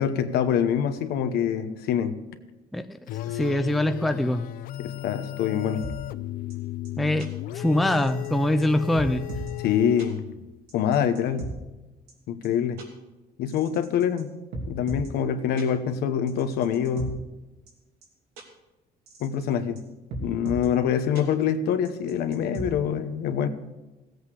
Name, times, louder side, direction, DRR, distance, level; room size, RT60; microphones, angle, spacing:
voice 1, 0.0-2.2 4.8-5.8 9.6-10.2 10.7-11.5 12.3-12.8 13.4-14.3 14.7-17.2 19.2-19.8 20.2-23.5, left 8 dB, 80° left, 9 dB, 1.1 m, -25 dB
sound 1, 3.1-10.5, left 14 dB, 65° left, 0.5 m, -35 dB
voice 2, 3.2-4.4 7.0-7.3 7.5-9.2, left 1 dB, ahead, 9 dB, 0.4 m, -23 dB
sound 2, 5.8-5.9 6.5-6.6 6.9-7.0 7.2-7.3 7.9-8.3 8.6-8.7 8.9-9.5 10.0-10.1 10.7-11.5 12.1-12.2 12.4-12.5 12.8-12.9 13.5-14.2 14.5-15.1 15.6-15.7 16.3-17.1 17.7-17.8 18.0-18.1 18.4-18.5 19.1-19.5 19.8-19.9 20.1-20.7 21.2-21.3 21.9-22.7, right 2 dB, 85° right, 2.7 m, -36 dB
17.0 x 8.0 x 5.0 m, 1.1 s
cardioid pair, 175°, 16 cm